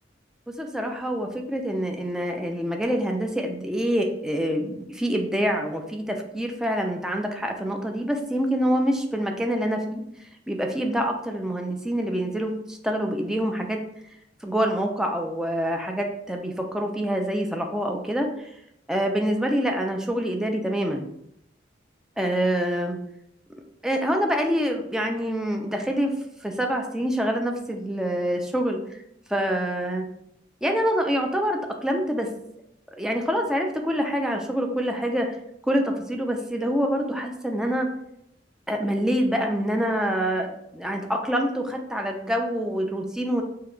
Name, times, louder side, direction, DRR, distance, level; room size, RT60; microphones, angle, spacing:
voice 1, 0.6-10.0 10.5-13.8 14.4-18.5 18.9-21.0 22.2-23.0 23.8-29.0 29.3-30.1 30.6-32.3 33.0-35.4 35.7-37.9 38.7-43.4, equal, 5° right, 2 dB, 0.3 m, -26 dB
2.7 x 2.2 x 3.7 m, 0.77 s
head